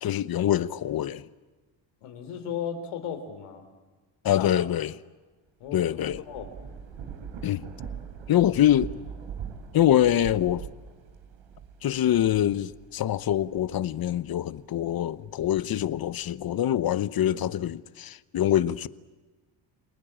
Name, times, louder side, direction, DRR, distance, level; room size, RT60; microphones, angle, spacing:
voice 1, 0.0-1.2 4.2-4.9 5.7-6.2 7.4-7.6 8.3-8.9 9.7-10.6 11.8-18.9, left 11 dB, 45° left, 0.9 m, -24 dB
voice 2, 2.0-3.6 4.4-4.5 5.6-5.8 6.3-6.5, left 8 dB, 90° left, 3.8 m, -35 dB
Thunder / Rain, 5.7-14.6 15.1-16.4, right 7 dB, 70° right, 3.9 m, -42 dB
30.0 x 19.5 x 8.8 m
cardioid pair, 95°, 48 cm